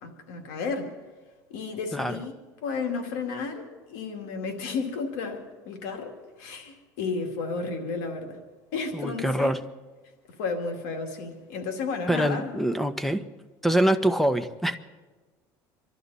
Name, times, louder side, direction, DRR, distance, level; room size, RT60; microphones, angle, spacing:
voice 1, 0.0-0.9 1.5-2.3 2.6-8.4 8.7-9.6 10.4-12.5, left 4 dB, 85° left, 4 dB, 2.3 m, -32 dB
voice 2, 8.9-9.6 12.1-13.2 13.6-14.8, right 1 dB, ahead, 10 dB, 1.0 m, -24 dB
27.0 x 12.0 x 4.2 m, 1.3 s
supercardioid pair, 100°, 9 cm